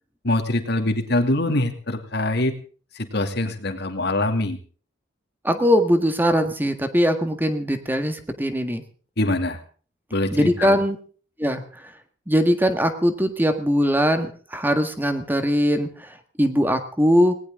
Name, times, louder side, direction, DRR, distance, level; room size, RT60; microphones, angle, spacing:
voice 1, 0.2-2.5 3.0-4.6 9.2-9.6 10.1-10.8, left 1 dB, 65° left, 6 dB, 2.5 m, -23 dB
voice 2, 5.4-8.8 10.3-11.0 11.4-11.9 12.3-17.3, equal, 10° right, 8 dB, 1.7 m, -21 dB
19.0 x 19.0 x 3.7 m, 0.40 s
head